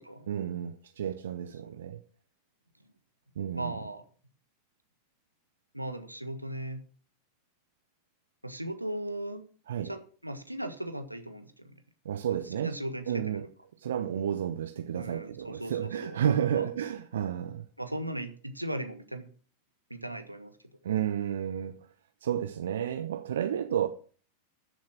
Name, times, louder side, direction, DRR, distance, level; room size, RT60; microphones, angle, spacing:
voice 1, 0.3-2.0 3.4-3.7 9.7-9.9 12.0-12.7 13.1-13.4 13.8-17.6 20.8-21.7 22.2-23.9, right 9 dB, 60° right, 0.7 m, -31 dB
voice 2, 3.5-4.0 5.7-6.8 8.4-9.4 9.8-11.7 12.6-13.4 14.9-16.2 16.5-16.7 17.8-19.3 19.9-20.5, right 1 dB, 90° right, 1.4 m, -37 dB
13.5 x 7.3 x 6.1 m
figure-of-eight pair, 90°, 0 cm